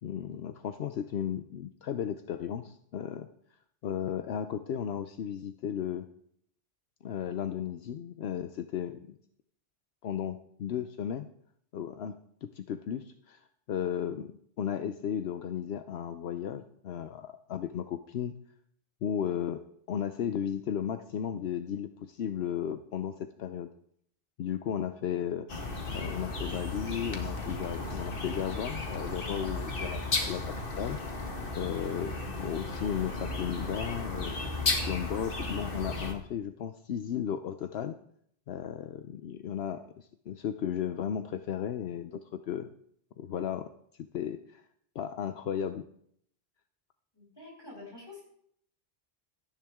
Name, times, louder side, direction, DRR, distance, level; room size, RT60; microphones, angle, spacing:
voice 1, 0.0-3.3 3.8-6.1 7.0-9.2 10.0-11.3 11.7-14.3 14.6-18.3 19.0-23.7 24.4-25.5 25.9-31.3 31.5-32.1 32.4-34.3 34.9-38.0 38.5-42.7 43.2-43.7 44.1-44.6 44.9-45.8, left 9 dB, 80° left, 9 dB, 0.9 m, -35 dB
sound 1, 25.5-36.1, left 2 dB, 60° left, 1.8 m, -34 dB
voice 2, 47.1-48.2, left 3 dB, 25° left, -5 dB, 7.7 m, -47 dB
17.5 x 13.0 x 3.6 m, 0.67 s
omnidirectional pair, 1.1 m